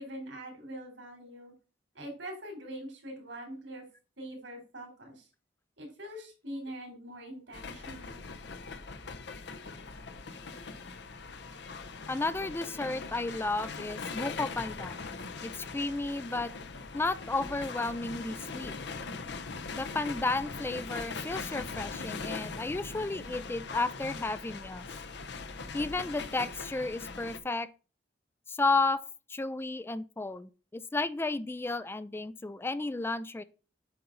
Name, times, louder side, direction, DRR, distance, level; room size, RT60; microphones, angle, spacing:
voice 1, 0.0-1.5 1.9-3.8 4.2-5.3 5.8-8.3, right 1 dB, 90° right, 3.6 m, -43 dB
sound 1, 7.5-27.4, left 4 dB, 70° left, 0.8 m, -41 dB
voice 2, 12.1-15.2 15.4-16.5 16.9-18.7 19.7-24.9 25.7-27.7 28.5-29.0 29.3-33.4, left 3 dB, 15° left, 0.3 m, -33 dB
8.5 x 5.5 x 3.9 m
head